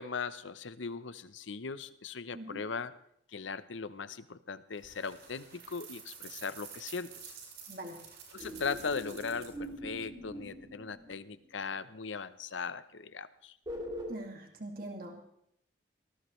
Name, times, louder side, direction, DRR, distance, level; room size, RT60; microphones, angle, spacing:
voice 1, 0.0-2.9 3.3-7.3 8.3-13.6, left 5 dB, 85° left, 14 dB, 0.8 m, -39 dB
sound 1, 4.8-9.6, right 7 dB, 70° right, 6.8 m, -50 dB
voice 2, 7.7-8.0 14.1-15.2, right 1 dB, 50° right, 1 dB, 2.2 m, -43 dB
sound 2, 8.4-11.6 13.7-14.2, equal, 25° right, 2.9 m, -43 dB
19.0 x 15.0 x 3.2 m, 0.71 s
head